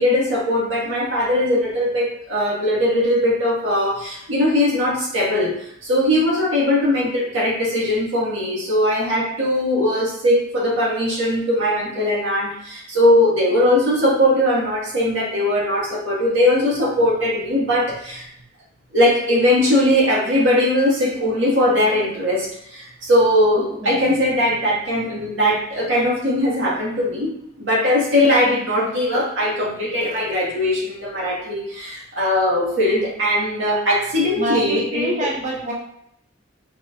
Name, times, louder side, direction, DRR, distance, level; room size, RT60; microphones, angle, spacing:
voice 1, 0.0-18.3 18.9-35.3, left 1 dB, 90° right, -5 dB, 1.7 m, -20 dB
voice 2, 34.4-35.7, right 1 dB, 40° right, -3 dB, 0.8 m, -26 dB
4.7 x 4.5 x 2.5 m, 0.73 s
head